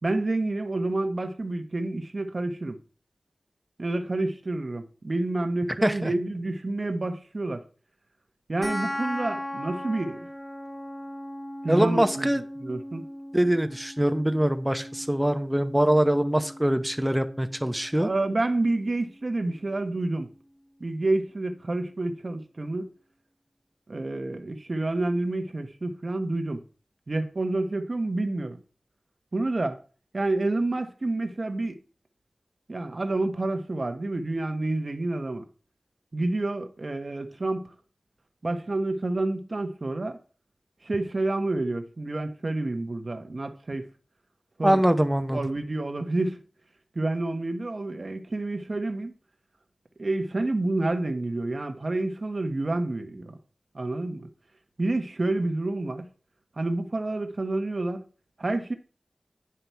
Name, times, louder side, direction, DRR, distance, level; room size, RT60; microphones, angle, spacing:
voice 1, 0.0-2.8 3.8-7.6 8.5-10.2 11.6-12.3 12.6-13.0 18.0-20.3 20.8-22.9 23.9-26.6 27.1-28.6 29.3-29.8 30.1-31.8 32.7-35.5 36.1-37.7 38.4-40.2 40.8-43.9 44.6-44.8 45.3-46.4 46.9-49.1 50.0-53.4 53.7-54.3 54.8-56.1 56.6-58.0 58.4-58.7, right 2 dB, 50° right, 1.1 m, -28 dB
voice 2, 5.8-6.1 11.7-12.4 13.3-18.1 44.6-45.4, right 1 dB, 10° right, 0.8 m, -23 dB
sound 1, 8.6-19.6, left 1 dB, 10° left, 1.3 m, -39 dB
9.8 x 5.5 x 4.6 m
wide cardioid pair, 80°, 0 cm